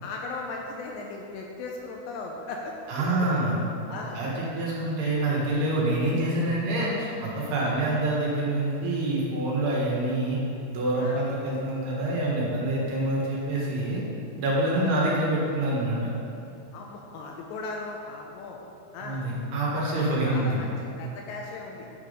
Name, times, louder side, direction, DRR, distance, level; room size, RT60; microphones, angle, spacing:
voice 1, 0.0-3.4 3.9-4.2 6.8-7.2 7.6-7.8 11.0-11.2 14.7-15.0 16.7-18.6 18.9-19.2 20.1-21.9, left 3 dB, 85° left, 0 dB, 2.6 m, -38 dB
voice 2, 2.9-3.6 4.1-10.4 10.7-14.0 14.4-16.1 19.0-20.6, right 1 dB, 65° right, -5 dB, 3.1 m, -26 dB
9.2 x 6.0 x 5.0 m, 2.8 s
omnidirectional pair, 5.6 m